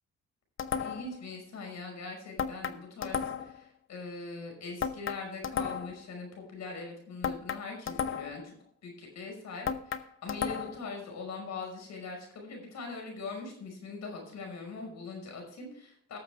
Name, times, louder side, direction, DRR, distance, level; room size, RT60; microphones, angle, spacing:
sound 1, 0.6-1.2 2.4-3.6 4.8-6.0 7.2-8.5 9.7-10.9, left 7 dB, 45° left, 0.8 m, -34 dB
voice 1, 0.8-8.5 8.8-16.2, left 3 dB, 65° left, 2 dB, 5.5 m, -42 dB
18.0 x 7.2 x 3.5 m, 0.65 s
cardioid pair, 90°, 30 cm